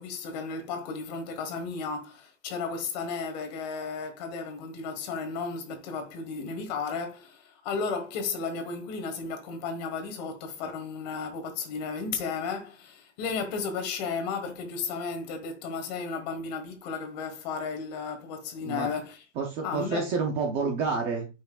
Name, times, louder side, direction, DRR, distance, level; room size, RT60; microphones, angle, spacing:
voice 1, 0.0-19.2 19.6-20.1, left 5 dB, 35° left, 1.6 m, -34 dB
voice 2, 19.4-21.3, right 4 dB, 15° right, 0.6 m, -29 dB
8.5 x 5.9 x 2.4 m
supercardioid pair, 175°, 37 cm